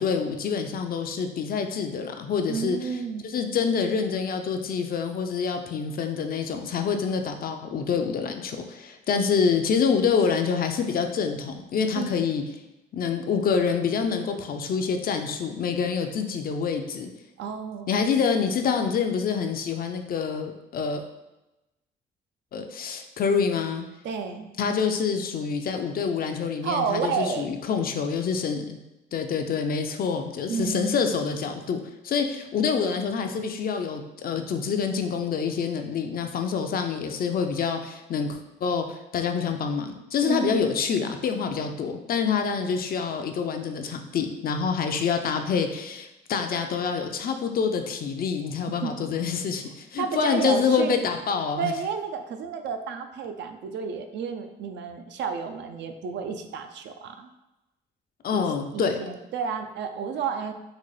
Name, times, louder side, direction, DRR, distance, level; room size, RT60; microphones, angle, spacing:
voice 1, 0.0-2.8 3.2-12.4 12.9-17.1 17.9-21.0 22.5-23.8 24.6-28.8 29.1-51.7 58.2-59.1, left 6 dB, 50° left, 5 dB, 0.4 m, -26 dB
voice 2, 2.5-3.2 11.9-12.1 17.4-18.0 24.0-24.5 26.6-27.5 30.5-30.9 40.3-40.7 48.7-48.9 50.0-51.0 51.6-57.3 58.3-58.4 58.7-60.5, right 6 dB, 65° right, 7 dB, 0.4 m, -31 dB
3.9 x 2.1 x 3.2 m, 0.97 s
cardioid pair, 90°, 20 cm